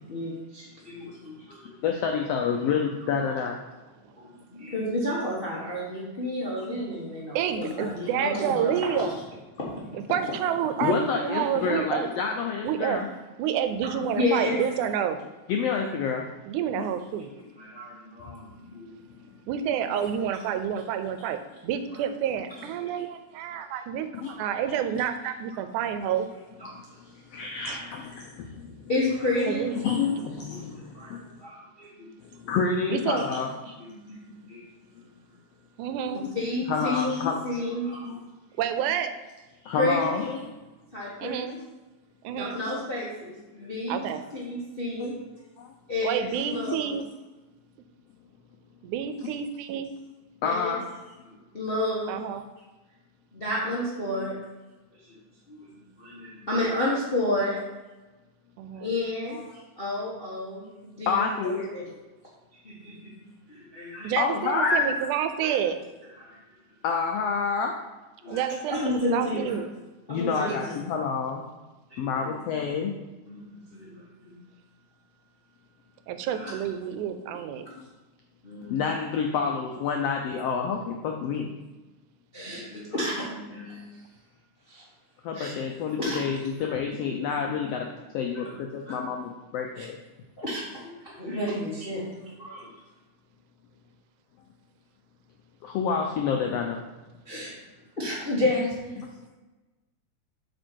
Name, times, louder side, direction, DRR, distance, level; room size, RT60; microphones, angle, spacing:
voice 1, 0.0-1.7 4.2-9.1 14.1-14.6 17.6-18.9 19.9-20.0 24.3-24.4 26.6-26.7 28.9-29.7 30.9-31.1 31.4-32.1 33.8-34.2 34.5-34.7 36.3-38.1 39.8-40.3 40.9-41.6 42.3-44.1 44.3-45.1 45.9-46.9 50.4-50.8 51.3-52.2 53.3-54.3 55.1-55.2 55.5-57.6 58.8-59.4 59.8-61.8 62.6-63.1 63.5-64.1 65.4-65.5 66.2-66.3 68.2-68.4 68.7-69.5 70.1-71.1 71.9-72.3 73.3-73.4 73.7-74.3 76.3-76.5 78.4-78.8 81.2-81.3 82.3-83.8 84.7-84.8 85.3-85.6 86.0-86.2 86.5-86.8 87.3-87.4 88.3-88.5 88.9-89.0 89.8-89.9 90.4-90.6 91.0-92.0 92.4-92.6 97.3-97.5 98.0-98.9, left 1 dB, 50° left, -6 dB, 0.6 m, -31 dB
voice 2, 1.8-3.6 6.6-6.7 10.8-13.1 15.5-16.2 16.8-16.9 24.2-24.3 27.3-28.5 29.8-31.2 32.4-33.5 36.2-36.3 36.7-37.4 38.0-38.1 39.6-40.4 45.0-45.1 45.6-45.7 46.6-46.7 50.4-50.8 54.2-54.3 59.3-59.4 61.1-61.7 64.2-64.8 66.8-67.7 70.1-71.4 72.0-72.9 78.7-81.5 85.2-87.9 88.1-90.0 95.6-96.8 99.0-99.1, left 5 dB, 80° left, 2 dB, 1.4 m, -28 dB
voice 3, 7.3-9.1 9.9-12.1 12.6-13.0 13.4-15.2 16.5-17.3 19.5-24.1 24.4-26.3 27.7-27.9 29.5-29.8 32.9-33.3 35.8-36.2 38.6-39.1 41.2-41.5 42.2-42.6 43.9-44.2 46.0-47.1 48.8-49.9 52.1-52.4 58.6-58.9 64.0-65.8 68.3-69.7 76.1-77.7, right 9 dB, 85° right, 9 dB, 2.1 m, -29 dB
7.8 x 4.5 x 4.5 m, 1.1 s
omnidirectional pair, 3.5 m